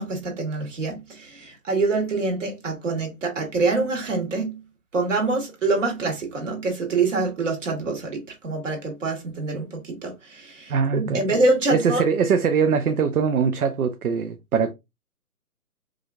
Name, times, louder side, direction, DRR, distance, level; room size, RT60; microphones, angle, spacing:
voice 1, 0.0-4.6 4.9-12.0, right 3 dB, 50° right, 1.7 m, -25 dB
voice 2, 10.7-11.2 11.7-14.7, right 6 dB, 70° right, 0.7 m, -22 dB
4.8 x 2.4 x 2.5 m
hypercardioid pair, 165°, 46 cm